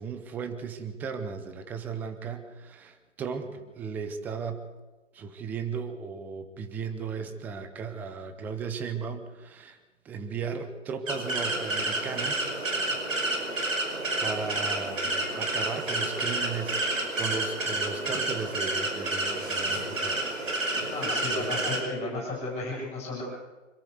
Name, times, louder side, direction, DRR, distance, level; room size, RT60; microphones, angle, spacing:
voice 1, 0.0-4.6 5.1-9.8 10.0-12.5 14.2-20.5, right 5 dB, 5° right, 9 dB, 0.6 m, -36 dB
sound 1, 11.1-21.8, right 2 dB, 80° right, 5.8 m, -30 dB
voice 2, 20.9-23.2, left 2 dB, 15° left, -3 dB, 7.3 m, -33 dB
26.0 x 13.5 x 8.2 m, 1.2 s
hypercardioid pair, 150°, 38 cm